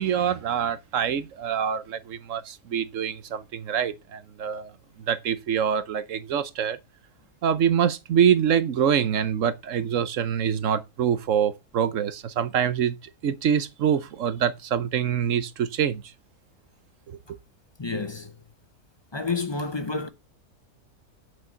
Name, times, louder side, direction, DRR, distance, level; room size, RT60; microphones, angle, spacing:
voice 1, 0.0-4.7 5.1-6.8 7.4-13.0 13.2-16.0, right 8 dB, 65° right, 1.1 m, -25 dB
voice 2, 17.8-18.4 19.1-20.1, left 3 dB, 30° left, 0.5 m, -29 dB
8.6 x 6.7 x 5.5 m
omnidirectional pair, 1.5 m